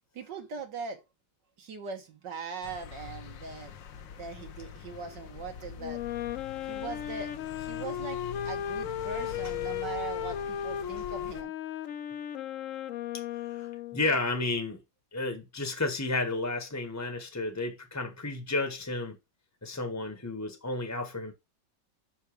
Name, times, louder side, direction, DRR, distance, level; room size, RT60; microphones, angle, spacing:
voice 1, 0.1-1.0 1.6-6.0 6.6-8.2 8.5-11.5, right 5 dB, 75° right, 2.0 m, -40 dB
sound 1, 2.6-11.4, left 8 dB, 80° left, 1.6 m, -45 dB
Wind instrument woodwind instrument, 5.8-14.2, left 10 dB, 60° left, 0.8 m, -35 dB
voice 2, 13.5-14.8 15.1-19.2 19.6-21.3, left 2 dB, 15° left, 0.8 m, -32 dB
5.8 x 5.6 x 4.9 m
omnidirectional pair, 1.9 m